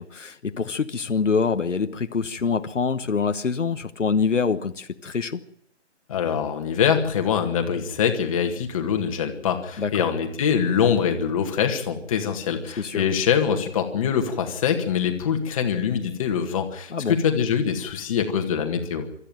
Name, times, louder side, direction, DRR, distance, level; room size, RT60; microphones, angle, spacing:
voice 1, 0.0-5.4 9.8-10.0 12.8-13.0 16.9-17.2, left 5 dB, 80° left, 9 dB, 1.3 m, -25 dB
voice 2, 6.1-19.1, left 7 dB, 30° left, 5 dB, 2.0 m, -24 dB
23.0 x 13.0 x 9.1 m, 0.70 s
figure-of-eight pair, 155°, 36 cm